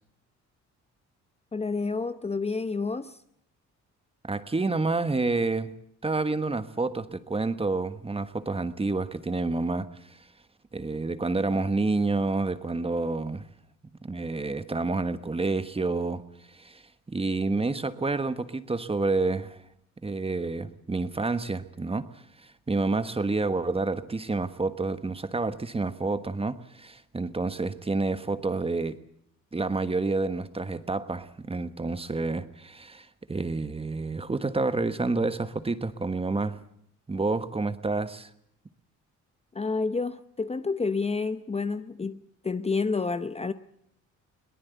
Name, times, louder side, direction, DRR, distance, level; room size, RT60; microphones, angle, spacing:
voice 1, 1.5-3.2 39.5-43.5, left 4 dB, 20° left, 0.8 m, -29 dB
voice 2, 4.2-5.7 6.0-10.2 10.7-13.5 14.0-16.2 16.5-16.8 17.1-19.6 20.0-22.1 22.4-29.0 29.5-36.6 37.1-38.3, right 3 dB, 20° right, 1.3 m, -29 dB
22.5 x 18.5 x 8.2 m
cardioid pair, 90°, 30 cm